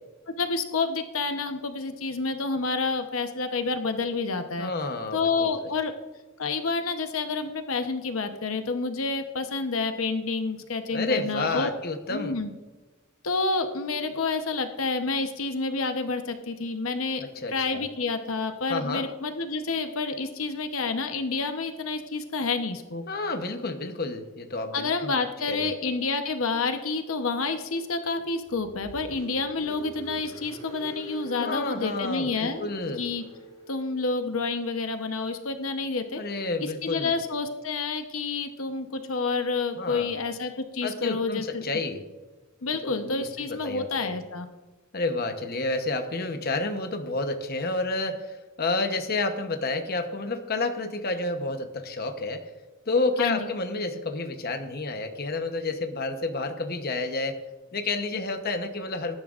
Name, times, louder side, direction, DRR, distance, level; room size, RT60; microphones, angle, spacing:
voice 1, 0.4-4.7 5.1-5.9 6.4-11.7 12.1-12.5 13.2-17.2 17.5-23.0 24.7-32.7 33.0-33.2 33.7-36.2 36.8-41.6 42.6-44.5 53.2-53.5, left 4 dB, 80° left, 7 dB, 0.9 m, -29 dB
voice 2, 4.6-5.5 10.9-12.4 17.2-17.9 18.7-19.1 23.1-25.2 25.5-25.7 31.4-33.0 36.1-37.1 39.8-40.1 40.8-42.0 42.8-44.1 44.9-52.4 52.9-57.4 57.7-59.2, left 3 dB, 45° left, 6 dB, 1.0 m, -30 dB
Car, 28.5-33.9, right 1 dB, 20° left, 4.8 m, -44 dB
20.0 x 11.0 x 2.5 m, 1.2 s
head